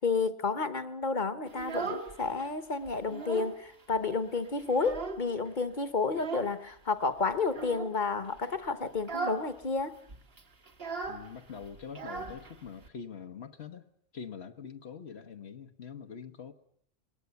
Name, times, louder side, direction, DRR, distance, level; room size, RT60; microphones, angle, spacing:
voice 1, 0.0-10.0, left 4 dB, 45° left, 1.3 m, -31 dB
Child speech kid speaking, 1.5-2.5 2.8-3.6 3.9-4.0 4.4-5.5 6.1-6.6 7.5-8.0 8.4-8.6 9.0-9.5 9.8-9.9 10.1-12.9, right 4 dB, 65° right, 1.8 m, -38 dB
voice 2, 11.1-13.9 14.1-16.5, left 6 dB, 75° left, 1.3 m, -44 dB
21.0 x 19.0 x 8.1 m
omnidirectional pair, 1.1 m